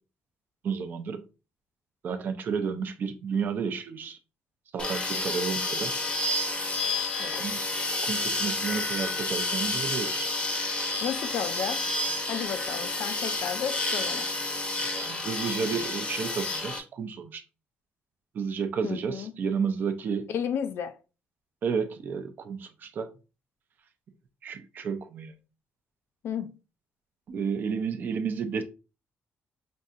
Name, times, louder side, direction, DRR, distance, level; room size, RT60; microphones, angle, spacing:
voice 1, 0.6-1.2 2.0-4.2 4.7-5.9 7.3-7.6 8.0-10.3 14.9-17.4 18.3-20.3 21.6-23.1 24.4-25.3 27.3-28.6, right 6 dB, 45° right, 0.5 m, -31 dB
sound 1, 4.8-16.8, left 2 dB, 25° left, 0.7 m, -30 dB
voice 2, 11.0-11.9 12.3-14.3 18.8-19.3 20.3-21.0 26.2-26.6, left 8 dB, 55° left, 0.4 m, -33 dB
5.3 x 2.7 x 2.4 m
cardioid pair, 175°, 5 cm